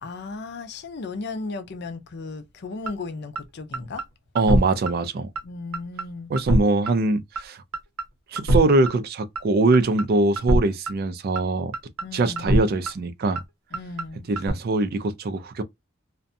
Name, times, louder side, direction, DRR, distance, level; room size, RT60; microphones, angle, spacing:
voice 1, 0.0-4.0 5.4-6.3 12.0-12.6 13.7-14.3, left 3 dB, 50° left, 0.5 m, -35 dB
sound 1, 2.9-3.0 3.4-3.5 3.7-4.0 4.4-4.6 4.9-5.0 5.4-5.5 5.7-6.0 6.4-6.6 6.9-7.0 7.4-7.5 7.7-8.0 8.4-8.6 8.9-9.0 9.4-9.5 9.7-10.0 10.4-10.6 10.9-11.0 11.4-11.5 11.7-12.0 12.4-12.6 12.9-13.0 13.4-13.5 13.7-14.0 14.4-14.5, right 1 dB, 90° right, 0.8 m, -22 dB
voice 2, 4.4-5.3 6.3-7.6 8.3-11.7 12.1-13.4 14.3-15.6, right 2 dB, 45° right, 0.4 m, -22 dB
2.6 x 2.1 x 2.5 m
head